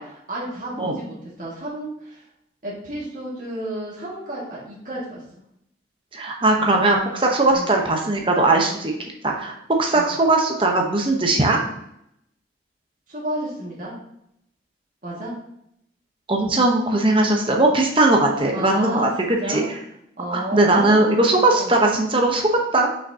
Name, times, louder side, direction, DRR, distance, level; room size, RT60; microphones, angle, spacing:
voice 1, 0.3-2.2 2.6-5.2 6.6-6.8 7.5-7.7 9.9-10.1 13.1-13.9 15.0-15.3 18.5-19.7 20.2-21.3 21.5-21.8, right 1 dB, 45° right, -7 dB, 1.9 m, -32 dB
voice 2, 6.1-8.9 9.2-9.5 9.8-11.6 16.3-19.1 19.5-19.6 20.3-22.9, right 2 dB, 30° right, 1 dB, 0.9 m, -19 dB
5.8 x 5.8 x 2.8 m, 0.75 s
head